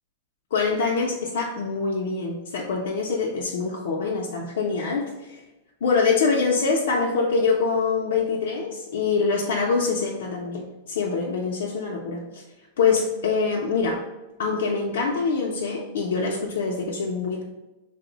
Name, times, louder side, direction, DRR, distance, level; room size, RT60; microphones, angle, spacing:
voice 1, 0.5-5.4 5.8-12.4 12.8-14.0 14.4-17.4, left 4 dB, 80° left, -2 dB, 0.4 m, -24 dB
2.9 x 2.0 x 3.8 m, 1.0 s
supercardioid pair, 145°, 0 cm